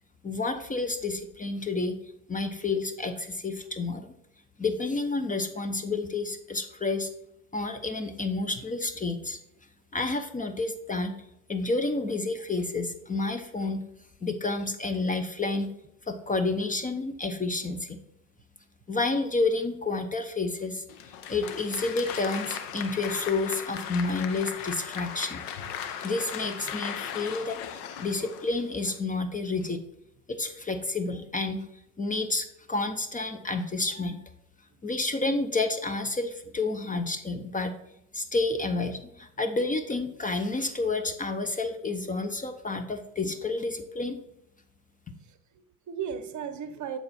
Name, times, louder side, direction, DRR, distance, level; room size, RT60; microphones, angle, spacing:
voice 1, 0.2-2.0 2.3-4.1 4.6-7.1 7.5-9.4 9.9-11.1 11.5-13.8 14.2-15.7 16.1-18.0 18.9-20.8 21.3-25.4 26.0-27.6 28.0-29.8 30.3-31.6 32.0-34.2 34.8-37.7 38.1-44.2, left 3 dB, 15° left, 0.8 m, -30 dB
Applause, 20.9-29.0, left 8 dB, 75° left, 1.0 m, -38 dB
voice 2, 45.2-47.0, right 7 dB, 40° right, 0.9 m, -37 dB
8.7 x 4.4 x 4.2 m
hypercardioid pair, 75°, 45 cm